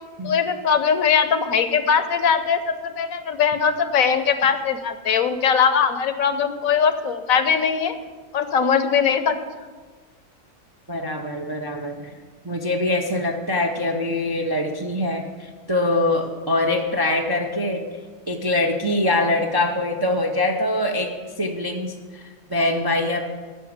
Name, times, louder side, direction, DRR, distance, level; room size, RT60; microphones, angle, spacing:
voice 1, 0.2-7.9 8.3-9.4, left 6 dB, 70° left, 10 dB, 1.1 m, -20 dB
voice 2, 10.9-12.1 12.4-17.9 18.3-23.2, left 2 dB, 30° right, 2 dB, 0.4 m, -23 dB
10.0 x 5.9 x 8.6 m, 1.4 s
omnidirectional pair, 1.6 m